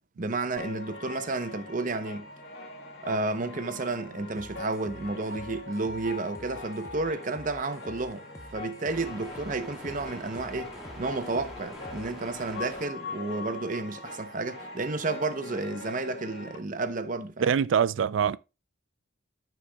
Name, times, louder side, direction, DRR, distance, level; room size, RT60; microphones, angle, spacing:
voice 1, 0.2-2.3 3.0-8.2 8.5-17.5, right 3 dB, 40° right, 0.7 m, -32 dB
sound 1, 0.6-16.6, left 3 dB, 70° left, 1.5 m, -42 dB
sound 2, 0.7-16.4, equal, ahead, 2.4 m, -50 dB
sound 3, 4.4-12.1, equal, 15° left, 0.7 m, -49 dB
voice 2, 17.4-18.4, right 7 dB, 70° right, 0.3 m, -24 dB
13.5 x 6.1 x 2.2 m
head